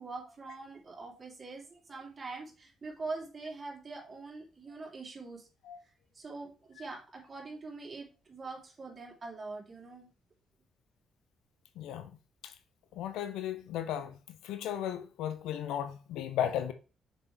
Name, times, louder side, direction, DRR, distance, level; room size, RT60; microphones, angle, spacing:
voice 1, 0.0-5.5 6.1-10.1, right 3 dB, 35° right, 3.4 m, -43 dB
voice 2, 11.8-12.1 12.9-14.2 14.4-16.7, left 10 dB, 65° left, 0.7 m, -35 dB
6.8 x 6.5 x 3.4 m
figure-of-eight pair, 40°, 0 cm